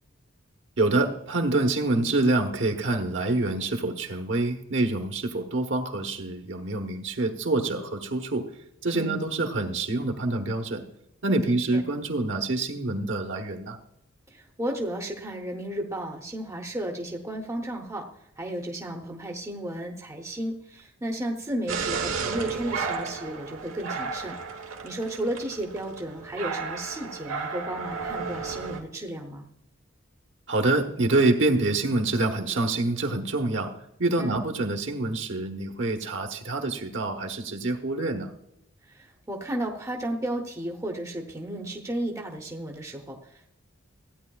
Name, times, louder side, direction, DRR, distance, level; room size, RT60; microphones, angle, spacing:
voice 1, 0.8-8.5 8.8-10.8 11.2-13.8 30.5-33.7 34.0-38.3, right 2 dB, 60° right, 4 dB, 1.1 m, -26 dB
voice 2, 11.4-11.8 14.3-18.1 18.4-24.4 24.8-29.5 34.2-34.4 38.9-43.5, right 1 dB, 15° right, 1 dB, 0.8 m, -33 dB
sound 1, 21.7-28.8, right 5 dB, 80° right, 1.3 m, -33 dB
15.0 x 9.5 x 2.3 m, 0.76 s
head